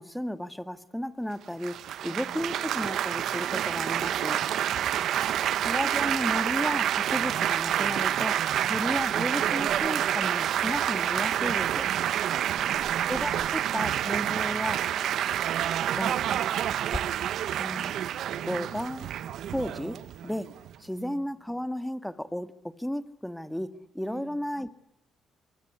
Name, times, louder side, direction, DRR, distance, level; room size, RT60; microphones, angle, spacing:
voice 1, 0.0-4.4 5.6-8.4 8.7-11.9 13.1-14.9 15.9-16.2 17.6-17.9 18.4-19.1 19.5-20.5 20.8-24.7, equal, 5° left, 10 dB, 1.8 m, -33 dB
Laughter / Applause / Chatter, 1.6-20.8, right 11 dB, 75° right, 0.9 m, -28 dB
voice 2, 2.0-2.5 8.6-9.1 20.9-21.3 24.0-24.4, right 4 dB, 45° right, 10 dB, 6.3 m, -50 dB
sound 1, 9.4-10.7 11.1-14.7 15.7-17.6 18.0-18.9, left 2 dB, 20° left, 4.3 m, -47 dB
26.0 x 22.5 x 9.8 m, 0.83 s
cardioid pair, 90°, 0 cm